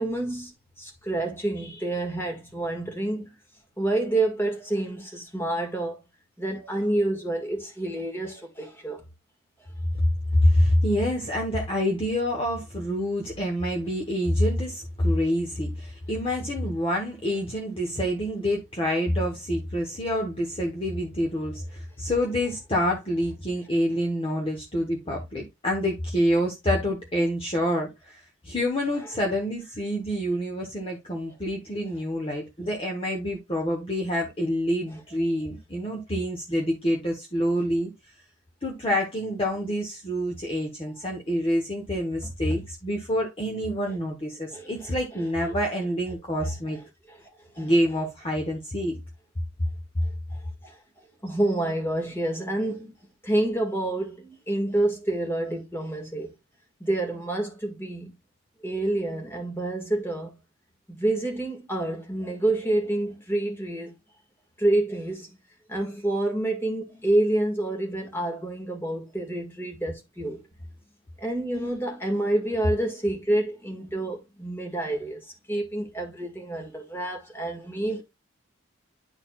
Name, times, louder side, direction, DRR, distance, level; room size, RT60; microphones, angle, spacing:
voice 1, 0.0-3.3 3.8-6.0 6.4-9.0 42.2-42.6 44.5-44.9 46.4-46.5 47.1-47.3 47.5-47.7 50.0-50.8 51.2-52.9 53.2-56.3 56.8-58.2 58.6-60.3 60.9-63.9 64.6-65.3 65.7-70.4 71.2-78.0, right 1 dB, 10° left, 1.8 m, -28 dB
voice 2, 10.3-37.9 38.6-46.8 47.6-49.0, equal, 30° left, 1.1 m, -27 dB
11.0 x 4.1 x 2.4 m
head